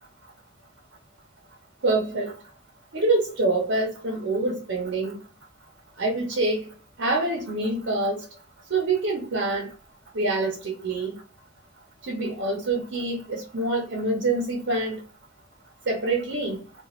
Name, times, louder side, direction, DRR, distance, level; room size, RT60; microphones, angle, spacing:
voice 1, 1.8-2.3 2.9-5.2 6.0-6.6 7.0-8.2 8.7-9.7 10.1-11.1 12.0-15.0 15.9-16.6, right 2 dB, 70° right, 0.7 m, -26 dB
2.4 x 2.3 x 2.9 m
head